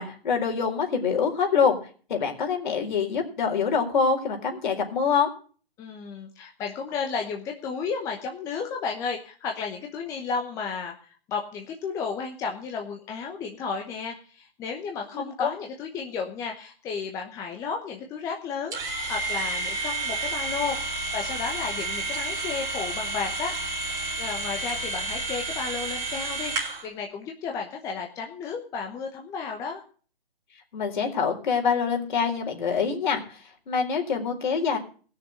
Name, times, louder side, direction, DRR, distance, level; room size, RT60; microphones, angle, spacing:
voice 1, 0.0-1.8 2.1-5.3 15.1-15.5 30.7-34.8, left 6 dB, 50° left, 2 dB, 4.1 m, -25 dB
voice 2, 5.8-10.9 11.3-23.5 24.2-26.5 26.8-29.8, left 5 dB, 10° left, 2 dB, 0.9 m, -33 dB
sound 1, 18.7-26.9, right 2 dB, 10° right, 2.9 m, -30 dB
16.5 x 6.6 x 8.5 m, 0.42 s
hypercardioid pair, 150°, 30 cm